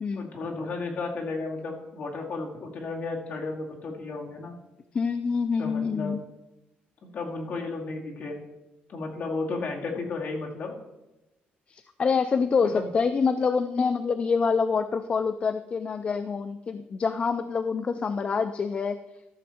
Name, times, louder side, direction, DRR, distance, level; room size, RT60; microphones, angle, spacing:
voice 1, 0.1-4.6 5.6-6.1 7.0-8.4 8.9-10.7 12.6-12.9, left 3 dB, 50° left, -1 dB, 2.1 m, -33 dB
voice 2, 4.9-6.2 11.7-19.0, left 5 dB, 30° left, 10 dB, 0.4 m, -26 dB
14.0 x 6.2 x 4.4 m, 1.0 s
cardioid pair, 150°, 4 cm